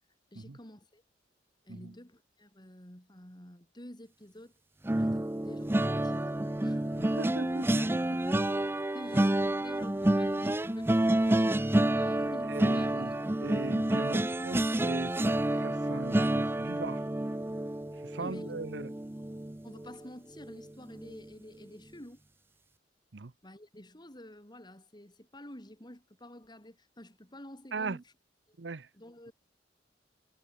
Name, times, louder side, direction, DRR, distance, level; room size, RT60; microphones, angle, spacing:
voice 1, 0.3-1.0 1.6-4.5 5.0-6.3 6.6-6.8 8.9-13.2 18.2-18.7 19.6-22.2 23.4-28.1 28.5-28.7 28.9-29.3, left 1 dB, 25° left, 4.7 m, -49 dB
sound 1, 4.8-20.0 20.4-20.7 20.9-21.2, right 1 dB, 15° right, 0.5 m, -29 dB
voice 2, 7.0-8.0 12.2-17.0 18.0-18.9 23.1-23.3 27.7-28.0 28.6-28.9, right 3 dB, 75° right, 0.8 m, -40 dB
head